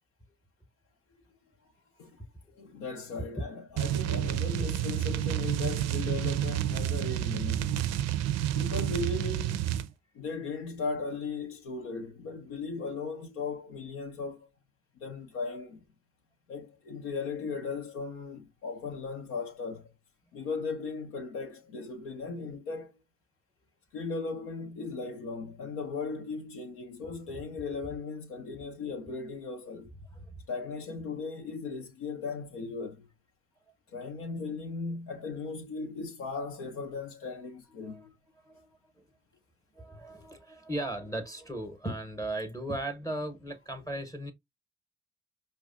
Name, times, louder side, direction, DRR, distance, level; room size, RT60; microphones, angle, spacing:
voice 1, 2.5-7.8 8.5-9.6 10.1-14.5 15.0-15.8 16.5-19.9 20.3-22.9 23.9-29.9 30.5-33.1 33.9-38.1, left 4 dB, 80° left, 0.6 m, -37 dB
sound 1, 3.8-9.9, right 12 dB, 60° right, 0.4 m, -30 dB
voice 2, 38.4-39.0 39.8-44.3, right 1 dB, 10° left, 0.8 m, -37 dB
4.7 x 2.2 x 2.4 m
hypercardioid pair, 45°, 29 cm